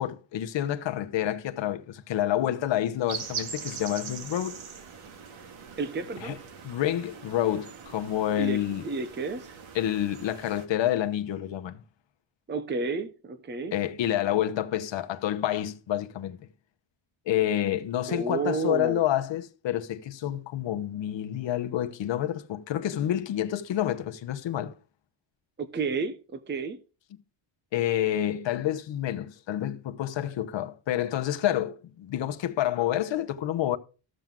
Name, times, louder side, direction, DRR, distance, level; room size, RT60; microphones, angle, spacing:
voice 1, 0.0-4.6 6.2-6.4 6.6-8.8 9.7-11.8 13.7-16.4 17.3-24.7 27.7-33.8, left 12 dB, 60° left, 1.1 m, -28 dB
sound 1, 3.1-10.6, right 6 dB, 75° right, 1.9 m, -41 dB
voice 2, 5.8-6.4 8.4-9.6 12.5-13.7 18.1-19.0 25.6-26.8, right 4 dB, 20° right, 0.7 m, -31 dB
14.0 x 7.6 x 3.7 m
wide cardioid pair, 160°, 49 cm